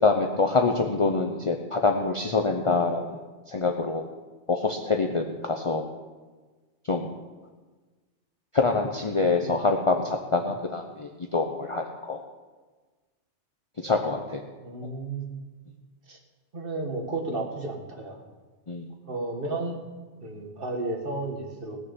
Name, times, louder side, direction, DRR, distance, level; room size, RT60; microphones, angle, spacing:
voice 1, 0.0-3.2 3.5-4.1 4.5-5.9 6.9-7.1 8.5-12.2 13.8-14.4 18.7-18.9, left 3 dB, 30° left, 3 dB, 0.8 m, -25 dB
voice 2, 14.6-15.4 16.1-16.2 16.5-18.2 19.1-19.8 20.2-21.8, right 2 dB, 50° right, 2 dB, 2.0 m, -32 dB
18.0 x 6.7 x 7.1 m, 1.3 s
omnidirectional pair, 1.2 m